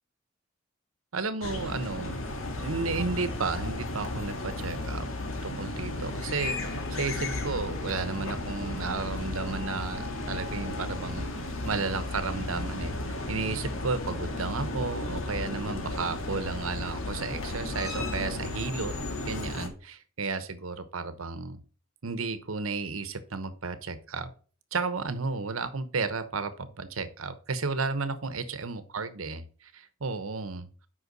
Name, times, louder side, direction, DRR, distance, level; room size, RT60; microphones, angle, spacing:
voice 1, 1.1-2.2 2.6-5.1 5.4-18.9 19.2-21.6 22.0-24.3 24.7-30.7, right 4 dB, 90° right, 12 dB, 1.0 m, -33 dB
sound 1, 1.4-19.7, left 2 dB, 80° left, 1.7 m, -34 dB
8.3 x 5.6 x 4.0 m, 0.39 s
head